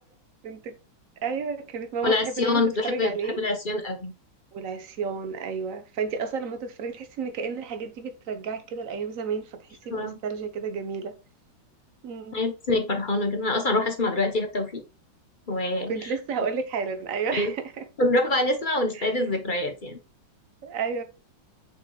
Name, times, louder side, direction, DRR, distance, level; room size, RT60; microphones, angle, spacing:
voice 1, 0.4-0.8 1.2-3.4 4.5-11.2 12.0-12.4 15.9-17.8 18.9-19.1 20.6-21.0, right 5 dB, 50° right, 1.2 m, -32 dB
voice 2, 2.0-4.1 9.9-10.2 12.3-14.8 15.5-16.1 17.3-17.5 18.0-20.0, left 2 dB, 35° left, 0.8 m, -25 dB
7.0 x 5.8 x 2.3 m
omnidirectional pair, 2.2 m